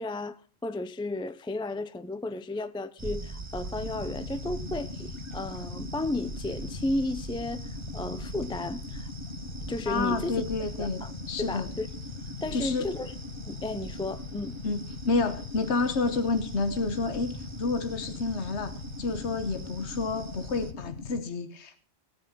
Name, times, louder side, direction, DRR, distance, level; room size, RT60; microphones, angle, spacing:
voice 1, 0.0-9.1 9.7-10.4 10.8-11.1 11.4-11.9 12.4-13.1 13.5-14.6, left 2 dB, 5° left, 0.4 m, -33 dB
sound 1, 3.0-20.7, right 3 dB, 25° right, 1.1 m, -42 dB
sound 2, 3.7-21.2, left 4 dB, 55° left, 1.2 m, -41 dB
voice 2, 9.9-11.7 12.5-12.9 14.6-14.8 15.0-17.3 17.6-21.7, left 3 dB, 80° left, 1.4 m, -29 dB
17.0 x 9.5 x 5.9 m
omnidirectional pair, 1.1 m